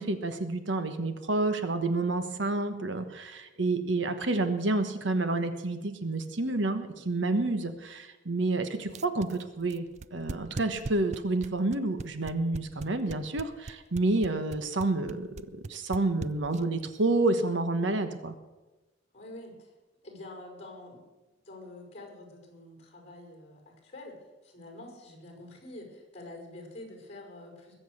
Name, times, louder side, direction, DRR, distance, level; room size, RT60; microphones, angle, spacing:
voice 1, 0.0-9.9 10.1-18.3, right 2 dB, 75° right, 8 dB, 1.2 m, -29 dB
sound 1, 8.9-16.8, right 3 dB, 35° right, 0.4 m, -39 dB
voice 2, 19.1-19.7 20.0-21.0 21.4-27.7, left 2 dB, 35° left, 1 dB, 5.4 m, -46 dB
21.0 x 8.0 x 6.4 m, 1.1 s
head